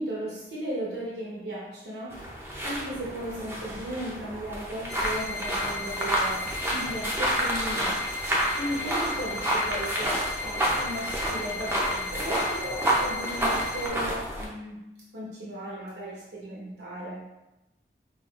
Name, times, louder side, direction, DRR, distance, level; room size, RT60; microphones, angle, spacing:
voice 1, 0.0-2.3 2.6-8.2 8.5-17.3, right 1 dB, 75° right, -6 dB, 0.9 m, -36 dB
sound 1, 2.1-14.5, right 1 dB, 15° right, 0.5 m, -29 dB
sound 2, 4.9-13.9, left 4 dB, 85° left, 0.9 m, -37 dB
5.6 x 2.4 x 2.4 m, 0.95 s
head